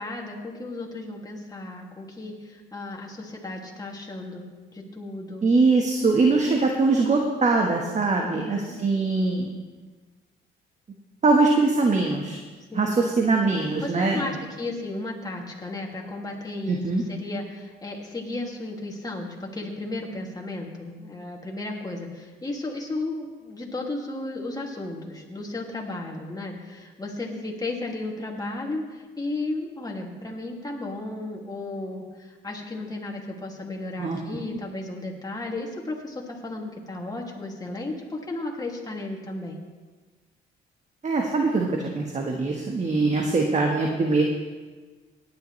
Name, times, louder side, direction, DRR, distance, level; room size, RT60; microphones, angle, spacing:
voice 1, 0.0-5.4 8.1-8.8 12.7-12.9 13.8-39.6, left 2 dB, 20° left, -1 dB, 2.4 m, -34 dB
voice 2, 5.4-9.5 11.2-12.4 12.7-14.3 16.7-17.0 34.0-34.2 41.0-44.2, right 3 dB, 35° right, 1 dB, 1.4 m, -22 dB
17.5 x 10.5 x 3.2 m, 1.4 s
cardioid pair, 90°, 20 cm